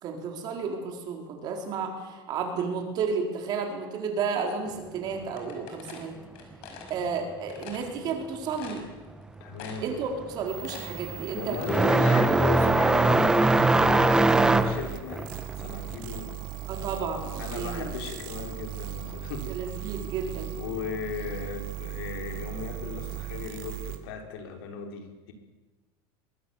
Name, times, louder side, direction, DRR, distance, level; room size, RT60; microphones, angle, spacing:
voice 1, 0.0-6.2 6.9-8.8 9.8-11.6 16.7-17.9 19.5-20.5, right 5 dB, 35° right, 3 dB, 4.1 m, -32 dB
sound 1, 5.4-7.0 7.5-7.9 8.3-8.4 8.6-9.2 9.6-10.0 10.3-12.0, left 6 dB, 50° left, 5.4 m, -45 dB
sound 2, 9.1-9.4 9.7-18.0 18.3-19.4 20.4-20.5 21.3-21.4 23.1-23.2, right 2 dB, 5° right, 0.7 m, -23 dB
voice 2, 9.4-9.8 11.4-16.3 17.4-19.5 20.6-25.3, left 6 dB, 70° left, 4 dB, 4.3 m, -36 dB
sound 3, 10.5-24.0, right 16 dB, 55° right, 2.5 m, -39 dB
24.5 x 20.5 x 7.2 m, 1.2 s
supercardioid pair, 170°, 13 cm